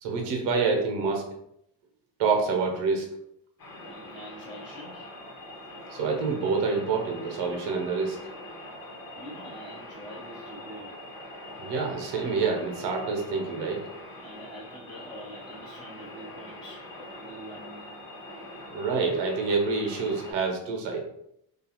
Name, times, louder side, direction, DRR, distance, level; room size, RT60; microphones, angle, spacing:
voice 1, 0.0-1.3 2.2-3.1 5.9-8.2 11.6-13.9 18.7-21.0, right 4 dB, 80° right, 2 dB, 0.8 m, -27 dB
sound 1, 3.6-20.3, left 1 dB, 60° left, 1.1 m, -43 dB
voice 2, 3.8-5.1 9.1-11.0 14.2-18.0, equal, 10° left, -9 dB, 0.9 m, -45 dB
2.4 x 2.3 x 2.9 m, 0.75 s
cardioid pair, 85°, 40 cm